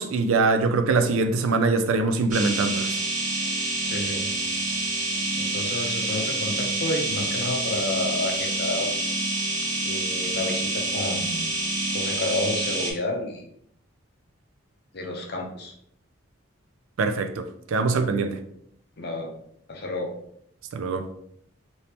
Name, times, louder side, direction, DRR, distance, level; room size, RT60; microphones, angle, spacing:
voice 1, 0.0-3.0 17.0-18.4 20.7-21.1, right 3 dB, 75° right, 0.4 m, -23 dB
sound 1, 2.3-12.9, right 2 dB, 35° right, 0.7 m, -27 dB
voice 2, 3.9-4.3 5.4-9.0 9.8-11.6 11.9-13.5 14.9-15.7 19.0-19.3 19.7-20.1, left 2 dB, 50° left, 0.6 m, -30 dB
3.4 x 2.7 x 2.9 m
head